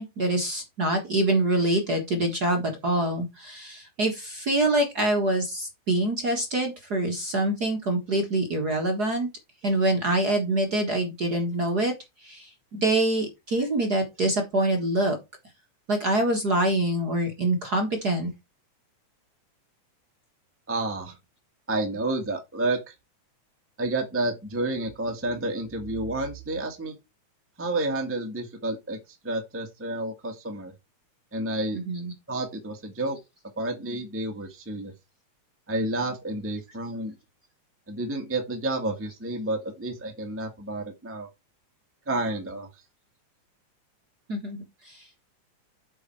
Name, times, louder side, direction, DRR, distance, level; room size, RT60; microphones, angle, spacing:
voice 1, 0.0-9.3 9.6-11.9 12.2-15.2 15.9-18.3 31.9-32.1 44.3-45.1, right 1 dB, 40° right, 1.6 m, -25 dB
voice 2, 20.7-21.1 21.7-22.9 23.8-27.0 27.6-30.7 31.3-31.8 32.3-33.2 33.6-34.9 35.7-37.1 37.9-41.3 42.1-42.7, right 2 dB, 5° right, 1.2 m, -30 dB
8.2 x 5.7 x 4.7 m
omnidirectional pair, 3.6 m